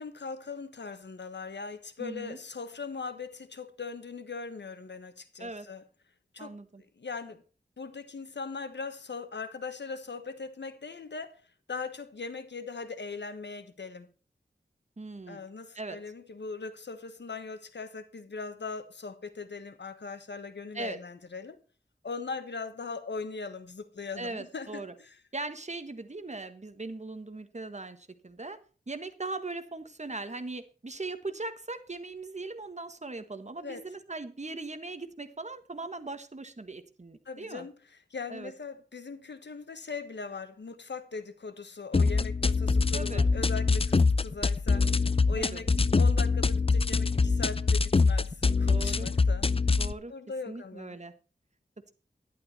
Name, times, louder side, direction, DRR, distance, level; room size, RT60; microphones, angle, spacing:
voice 1, 0.0-5.8 6.3-6.6 7.0-7.4 7.8-11.4 11.7-14.1 15.3-21.6 22.0-25.2 33.6-33.8 37.2-37.7 38.1-44.9 45.3-49.5 50.1-51.0, left 4 dB, 85° left, 1.3 m, -40 dB
voice 2, 2.0-2.4 5.4-5.7 6.4-6.8 15.0-15.4 15.7-16.0 20.7-21.0 24.2-24.9 25.3-28.6 28.9-37.7 38.3-38.5 42.9-43.3 45.4-45.6 48.7-49.1 49.8-50.1 50.4-51.1, right 3 dB, 40° right, 1.6 m, -39 dB
sound 1, 41.9-49.9, left 4 dB, 30° left, 0.5 m, -24 dB
11.5 x 11.5 x 4.3 m
wide cardioid pair, 70°, 18 cm